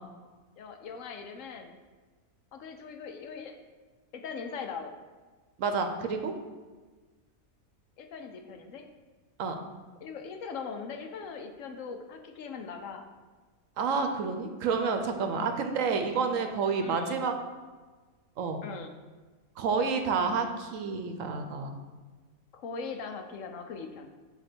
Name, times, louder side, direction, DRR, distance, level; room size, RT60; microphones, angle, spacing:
voice 1, 0.6-1.8 2.5-3.5 4.1-4.9 8.0-8.8 10.0-13.0 15.4-15.7 16.8-17.2 18.6-18.9 22.5-24.1, left 5 dB, 70° left, 5 dB, 0.9 m, -40 dB
voice 2, 5.6-6.3 9.4-9.6 13.8-17.3 18.4-18.6 19.6-21.7, right 5 dB, 70° right, 6 dB, 1.0 m, -29 dB
7.7 x 2.9 x 6.0 m, 1.3 s
omnidirectional pair, 1.5 m